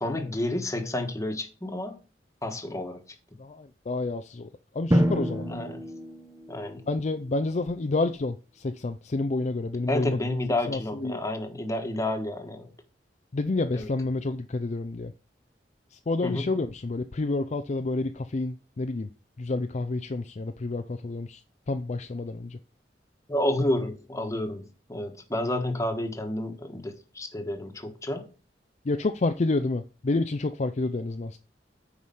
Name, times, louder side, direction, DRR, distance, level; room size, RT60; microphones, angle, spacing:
voice 1, 0.0-2.0 2.4-3.0 5.5-5.8 6.5-6.8 9.9-12.7 13.7-13.9 16.2-16.5 23.3-28.2, left 1 dB, 20° left, 1.4 m, -30 dB
voice 2, 3.4-5.6 6.9-10.2 10.7-11.2 13.3-15.1 15.9-19.1 19.4-21.4 21.7-22.6 28.8-31.4, left 2 dB, 40° left, 0.5 m, -29 dB
Drum, 4.9-6.8, equal, 15° right, 0.9 m, -27 dB
9.6 x 4.9 x 5.5 m
head